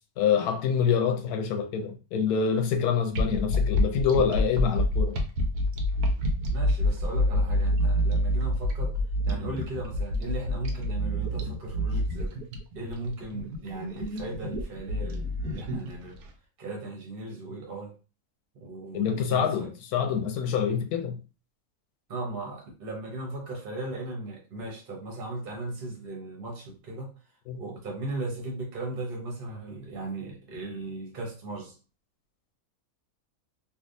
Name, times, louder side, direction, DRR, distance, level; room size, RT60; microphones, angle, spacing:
voice 1, 0.2-5.2 18.9-21.2 27.5-27.6, left 7 dB, 85° left, 1.1 m, -26 dB
sound 1, 3.1-16.2, left 1 dB, 85° right, 1.1 m, -27 dB
voice 2, 6.5-9.0 9.3-12.4 12.7-16.2 16.6-18.0 18.5-19.7 22.1-27.1 27.6-31.8, right 2 dB, 40° right, 1.0 m, -37 dB
3.4 x 2.5 x 2.6 m
omnidirectional pair, 1.6 m